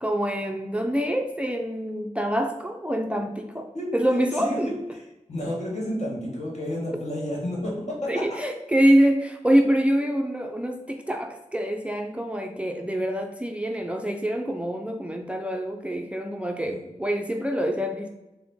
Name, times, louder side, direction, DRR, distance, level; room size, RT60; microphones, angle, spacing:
voice 1, 0.0-3.7 3.9-4.7 8.1-18.1, equal, 10° right, 4 dB, 0.4 m, -25 dB
voice 2, 4.3-8.2 16.6-16.8, left 1 dB, 60° left, -4 dB, 1.5 m, -31 dB
4.1 x 2.1 x 4.2 m, 0.96 s
wide cardioid pair, 60°, 13 cm